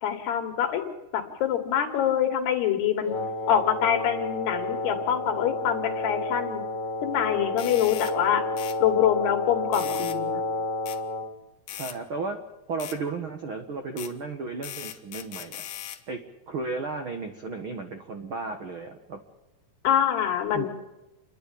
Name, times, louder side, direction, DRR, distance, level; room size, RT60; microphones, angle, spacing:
voice 1, 0.0-3.1 3.5-6.6 7.0-8.4 8.8-10.4 19.8-20.7, left 9 dB, 80° left, 6 dB, 3.9 m, -25 dB
Wind instrument woodwind instrument, 3.0-11.3, left 2 dB, 35° left, 1.8 m, -31 dB
sound 1, 7.6-8.2 8.6-8.8 9.7-10.2 10.9-11.0 11.7-12.0 12.8-13.0 14.0-14.1 14.6-16.0, left 11 dB, 65° left, 2.3 m, -39 dB
voice 2, 11.7-12.4 12.7-15.6 16.1-16.2 16.5-19.2 20.5-20.7, right 4 dB, 70° right, 5 dB, 1.2 m, -34 dB
29.5 x 11.0 x 8.5 m, 1.0 s
omnidirectional pair, 4.6 m